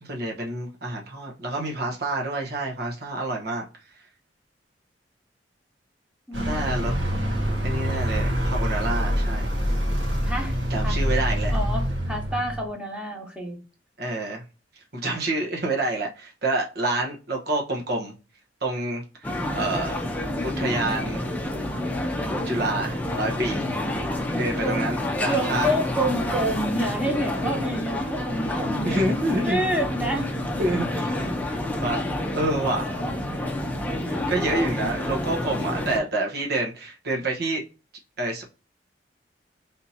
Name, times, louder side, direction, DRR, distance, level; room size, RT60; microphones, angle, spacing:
voice 1, 0.0-3.6 6.4-6.9 7.6-9.5 10.7-11.5 14.0-14.4 14.9-18.1 18.6-20.0 20.4-21.2 22.5-23.7 24.4-25.7 28.8-29.6 30.6-31.1 31.8-32.0 32.3-32.9 34.3-37.6 38.2-38.4, right 2 dB, 65° right, 1.1 m, -28 dB
voice 2, 6.3-6.7 7.1-7.6 10.2-11.0 11.5-13.6 22.3-22.4 24.3-24.8 25.3-29.2 29.4-30.3 34.0-34.7, right 1 dB, 5° right, 1.2 m, -29 dB
Vehicle, 6.3-12.7, equal, 85° right, 1.5 m, -25 dB
sound 1, 19.2-36.0, left 1 dB, 10° left, 0.7 m, -28 dB
3.5 x 2.8 x 4.1 m
head